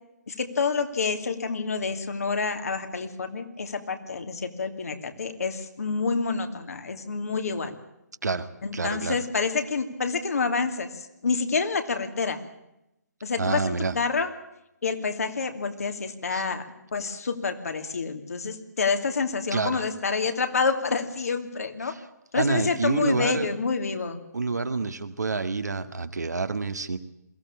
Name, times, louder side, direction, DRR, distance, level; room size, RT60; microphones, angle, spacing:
voice 1, 0.3-7.7 8.6-12.4 13.2-14.3 14.8-16.6 16.9-21.9 22.3-24.2, left 4 dB, 60° left, 6 dB, 2.8 m, -28 dB
voice 2, 8.2-9.2 13.4-14.0 16.3-16.5 19.5-19.8 21.8-22.0 22.3-23.5 24.3-27.0, right 3 dB, 70° right, 9 dB, 1.9 m, -28 dB
22.5 x 16.0 x 8.7 m, 0.87 s
figure-of-eight pair, 145°, 9 cm